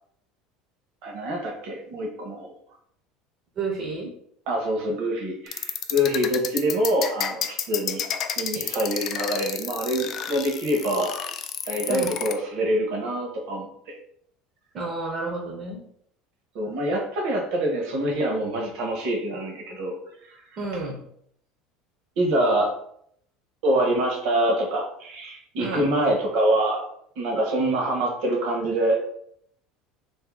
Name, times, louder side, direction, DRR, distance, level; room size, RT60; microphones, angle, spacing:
voice 1, 1.0-2.5 4.5-8.0 8.4-11.2 11.6-14.0 16.5-19.9 20.2-20.4 22.2-22.7 23.6-26.8 27.2-29.0, right 1 dB, 60° right, 1 dB, 1.0 m, -25 dB
voice 2, 3.6-4.1 11.9-12.1 14.7-15.8 20.6-21.0 25.6-26.1, right 3 dB, 40° right, 1 dB, 0.7 m, -31 dB
sound 1, 5.5-12.3, left 9 dB, 40° left, 0.3 m, -30 dB
2.7 x 2.7 x 3.6 m, 0.68 s
cardioid pair, 145°, 0 cm